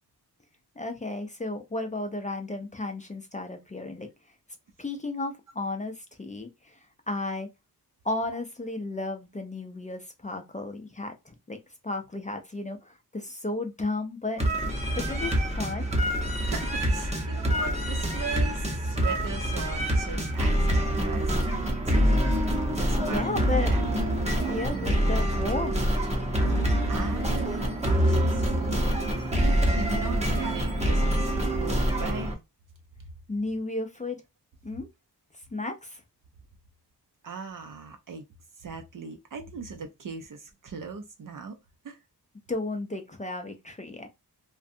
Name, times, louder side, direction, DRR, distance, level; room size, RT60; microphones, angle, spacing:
voice 1, 0.8-4.1 4.8-6.8 7.1-7.5 8.0-11.6 11.8-14.4 14.9-15.9 23.0-23.8 24.5-25.9 33.3-34.2 34.6-34.9 35.5-36.0 42.5-44.1, left 2 dB, 20° left, 0.4 m, -33 dB
sound 1, 14.4-32.3, equal, 15° right, 0.7 m, -26 dB
voice 2, 16.4-21.4 21.8-23.8 24.7-25.0 26.4-32.3 37.2-38.2 38.6-41.6 41.8-42.0, right 5 dB, 55° right, 0.5 m, -39 dB
2.5 x 2.2 x 2.6 m
wide cardioid pair, 125°, 39 cm